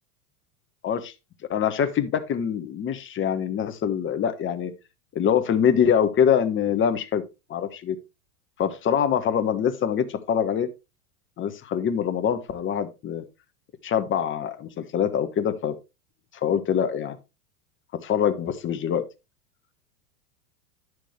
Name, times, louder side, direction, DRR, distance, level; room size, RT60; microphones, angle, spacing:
voice 1, 1.5-4.7 5.1-7.2 7.5-8.0 8.6-10.7 11.4-13.2 13.8-15.7 16.4-17.2 18.0-19.0, left 8 dB, 25° left, 1.2 m, -24 dB
10.5 x 6.3 x 3.2 m
hypercardioid pair, 105°, 44 cm